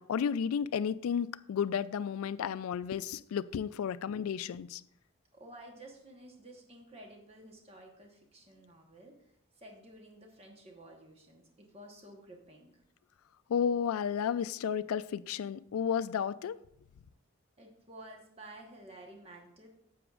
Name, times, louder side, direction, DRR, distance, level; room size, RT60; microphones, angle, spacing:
voice 1, 0.0-4.8 13.5-16.6, left 7 dB, 90° left, 0.3 m, -32 dB
voice 2, 5.3-9.1 9.6-12.7 17.6-19.7, right 1 dB, 30° right, 1.1 m, -52 dB
10.0 x 7.7 x 2.4 m
head